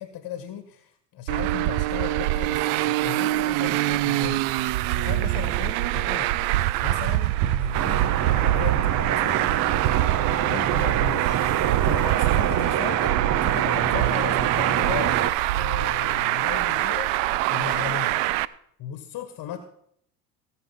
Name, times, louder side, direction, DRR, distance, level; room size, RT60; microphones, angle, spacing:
voice 1, 0.0-4.5 4.7-6.3 6.8-9.5 10.4-11.4 11.9-13.1 13.4-15.2 15.5-17.1 17.5-18.2 18.8-19.6, left 9 dB, 45° left, 9 dB, 1.5 m, -36 dB
Traffic noise roadway noise, 1.3-18.5, right 16 dB, 60° right, 0.7 m, -24 dB
sound 1, 7.7-15.3, right 9 dB, 35° right, 1.0 m, -26 dB
19.0 x 6.6 x 5.7 m, 0.68 s
hypercardioid pair, 80°, 47 cm